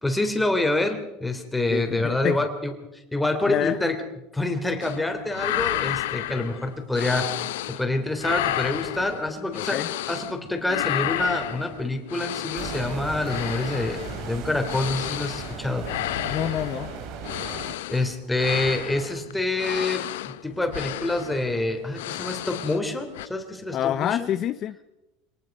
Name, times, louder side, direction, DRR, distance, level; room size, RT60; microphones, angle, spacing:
voice 1, 0.0-4.0 4.3-9.8 10.1-15.9 17.9-24.3, left 2 dB, 5° left, 5 dB, 3.3 m, -27 dB
voice 2, 1.7-2.4 3.5-3.8 9.6-9.9 16.2-16.9 23.7-24.8, left 11 dB, 40° left, 12 dB, 0.7 m, -27 dB
sound 1, 4.8-5.0 5.3-7.9 8.2-10.4 10.7-22.9 23.1-23.3, left 15 dB, 90° left, 0.8 m, -32 dB
sound 2, 12.6-17.7, right 7 dB, 60° right, 2.9 m, -36 dB
25.5 x 19.0 x 5.4 m, 0.98 s
supercardioid pair, 125°, 0 cm